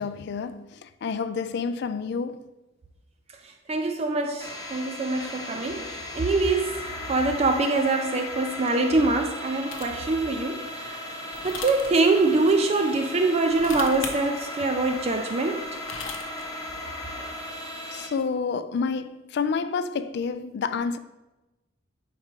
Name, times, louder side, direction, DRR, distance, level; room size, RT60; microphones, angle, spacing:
voice 1, 0.0-2.4 17.9-21.0, left 5 dB, 55° left, 0.3 m, -29 dB
voice 2, 3.7-11.1 11.4-15.7, right 3 dB, 30° right, 0.4 m, -24 dB
sound 1, 4.4-18.1, left 1 dB, 20° left, 0.7 m, -36 dB
sound 2, 9.7-10.1 11.3-11.9 13.4-14.1 15.6-16.4, left 5 dB, 75° left, 0.7 m, -36 dB
4.7 x 4.7 x 4.5 m
head